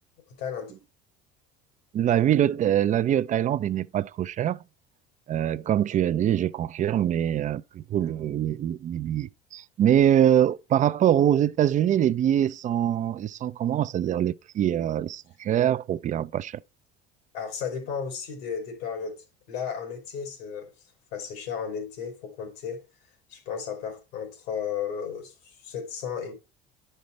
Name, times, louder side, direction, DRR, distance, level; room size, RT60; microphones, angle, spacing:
voice 1, 0.4-0.7 17.3-20.7 21.1-22.8 23.3-26.3, left 7 dB, 80° left, 2.9 m, -34 dB
voice 2, 1.9-4.6 5.3-16.6, right 10 dB, 35° right, 0.4 m, -24 dB
10.5 x 5.4 x 3.2 m
supercardioid pair, 95°, 21 cm